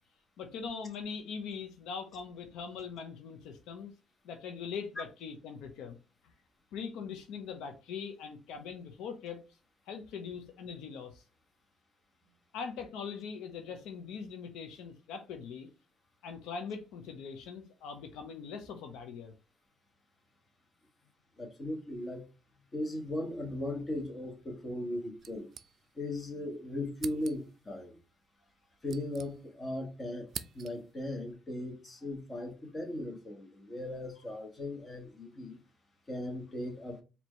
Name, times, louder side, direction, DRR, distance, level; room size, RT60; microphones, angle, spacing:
voice 1, 0.4-3.9 4.2-6.0 6.7-9.4 9.9-11.2 12.5-15.7 16.2-19.3, left 6 dB, 80° left, 0.7 m, -41 dB
voice 2, 21.4-22.2 22.7-25.5 25.9-28.0 28.8-30.3 30.5-35.6 36.1-37.0, left 1 dB, 25° left, 1.3 m, -38 dB
sound 1, 25.2-26.2 26.5-26.6 26.9-27.6 28.5-29.8 30.0-31.0, right 7 dB, 50° right, 0.4 m, -46 dB
4.4 x 2.9 x 3.1 m
cardioid pair, 110°, 0 cm